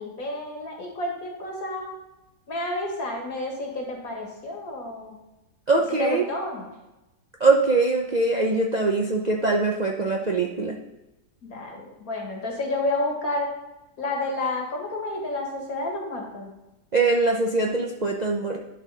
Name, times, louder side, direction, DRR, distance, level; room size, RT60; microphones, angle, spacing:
voice 1, 0.0-1.9 2.5-5.2 6.0-6.7 11.4-13.5 14.0-16.5, left 2 dB, 60° left, 0 dB, 2.0 m, -30 dB
voice 2, 5.7-6.2 7.4-10.8 16.9-18.6, right 3 dB, 60° right, -1 dB, 0.4 m, -22 dB
11.0 x 4.3 x 4.0 m, 0.98 s
omnidirectional pair, 1.8 m